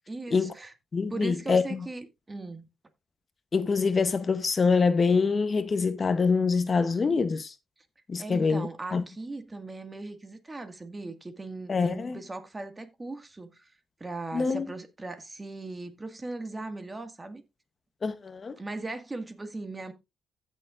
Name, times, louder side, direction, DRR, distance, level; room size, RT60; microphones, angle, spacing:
voice 1, 0.1-0.7 1.1-2.7 8.2-13.7 14.0-17.4 18.6-19.9, right 2 dB, 20° right, 1.8 m, -38 dB
voice 2, 0.9-1.8 3.5-7.5 8.1-9.0 11.7-12.2 14.3-14.7 18.0-18.6, left 4 dB, 35° left, 0.8 m, -25 dB
15.5 x 6.7 x 2.5 m
cardioid pair, 90°, 0 cm